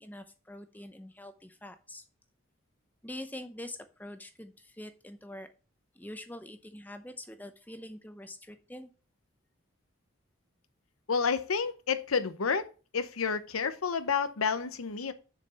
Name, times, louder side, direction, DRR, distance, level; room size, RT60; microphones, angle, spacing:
voice 1, 0.0-2.0 3.0-5.5 5.9-8.9, left 1 dB, 10° left, 0.8 m, -45 dB
voice 2, 11.1-12.7 12.9-15.1, left 5 dB, 85° left, 0.8 m, -30 dB
6.9 x 4.8 x 6.8 m
head